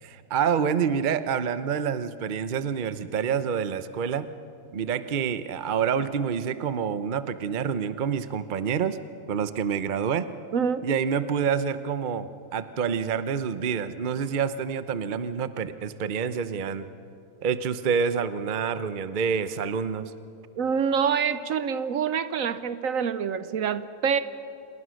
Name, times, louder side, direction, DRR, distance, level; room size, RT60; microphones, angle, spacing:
voice 1, 0.0-4.3 4.7-9.0 9.3-10.3 10.8-16.9 17.4-20.1, right 7 dB, 45° right, 12 dB, 0.6 m, -27 dB
voice 2, 10.5-10.9 20.6-24.2, right 7 dB, 60° right, 13 dB, 1.1 m, -26 dB
28.5 x 21.0 x 6.4 m, 2.5 s
omnidirectional pair, 1.7 m